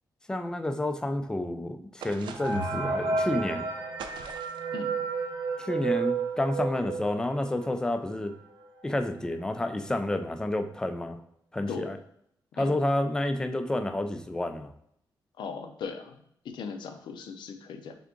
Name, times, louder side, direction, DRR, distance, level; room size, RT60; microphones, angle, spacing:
voice 1, 0.3-3.7 5.6-8.3 8.8-11.2 11.5-12.0 12.6-14.7, left 1 dB, 10° left, 7 dB, 0.3 m, -30 dB
sound 1, 2.0-2.8 4.0-4.7, right 6 dB, 85° right, 0.4 m, -43 dB
sound 2, 2.4-7.8 8.2-8.3 8.5-8.7 9.4-9.5 9.9-10.2, right 4 dB, 60° right, 0.7 m, -32 dB
voice 2, 15.4-16.2 16.4-18.0, left 5 dB, 80° left, 6 dB, 0.5 m, -38 dB
3.7 x 3.6 x 3.6 m, 0.71 s
wide cardioid pair, 175°, 8 cm